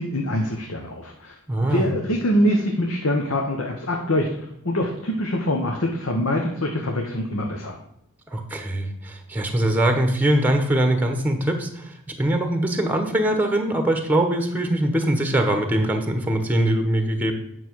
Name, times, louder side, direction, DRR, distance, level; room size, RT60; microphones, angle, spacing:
voice 1, 0.0-1.3 1.6-4.3 4.6-7.7, left 1 dB, 65° left, 1 dB, 1.2 m, -24 dB
voice 2, 1.5-1.9 8.3-17.3, right 1 dB, 5° right, 5 dB, 1.1 m, -22 dB
9.2 x 6.2 x 4.6 m, 0.76 s
head